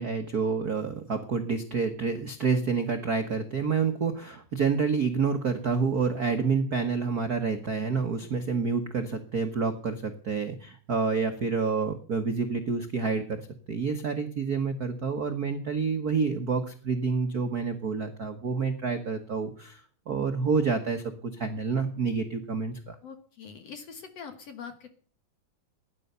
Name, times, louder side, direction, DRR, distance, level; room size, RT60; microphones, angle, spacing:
voice 1, 0.0-22.9, right 5 dB, 65° right, 6 dB, 0.9 m, -28 dB
voice 2, 23.0-24.9, left 6 dB, 60° left, 8 dB, 2.2 m, -43 dB
17.0 x 11.0 x 6.8 m, 0.44 s
omnidirectional pair, 3.6 m